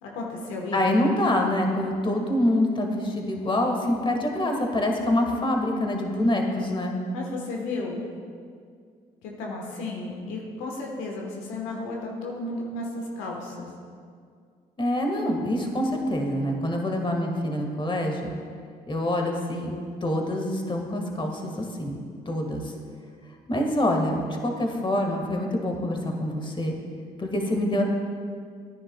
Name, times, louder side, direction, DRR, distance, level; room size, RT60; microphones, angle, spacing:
voice 1, 0.0-0.8 7.1-8.0 9.2-13.7, left 2 dB, 80° left, -1 dB, 1.2 m, -33 dB
voice 2, 0.7-6.9 14.8-18.3 18.9-19.7 20.0-22.0 22.2-22.6 23.5-26.8 27.2-27.8, left 1 dB, 25° left, 2 dB, 1.6 m, -25 dB
13.0 x 9.7 x 2.3 m, 2.2 s
hypercardioid pair, 55°, 19 cm